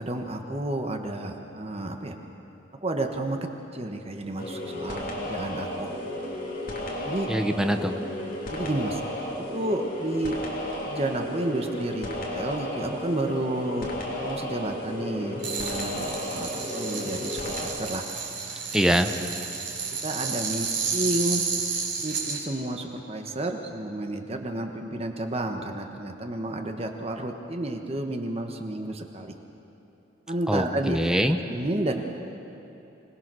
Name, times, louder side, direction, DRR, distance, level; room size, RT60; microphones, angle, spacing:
voice 1, 0.0-2.1 2.8-3.4 3.7-5.9 7.0-7.3 8.5-9.0 9.5-10.4 10.9-13.9 14.2-18.0 20.0-21.4 22.0-29.3 30.3-31.2 31.5-32.0, right 1 dB, 30° right, 4 dB, 1.2 m, -31 dB
sound 1, 4.4-17.7, left 1 dB, 50° left, 3.1 m, -33 dB
voice 2, 7.3-8.0 18.7-19.1 30.5-31.4, equal, 5° right, 6 dB, 0.8 m, -23 dB
sound 2, 15.4-22.4, right 5 dB, 60° right, 3.9 m, -31 dB
25.5 x 18.5 x 6.2 m, 2.9 s
head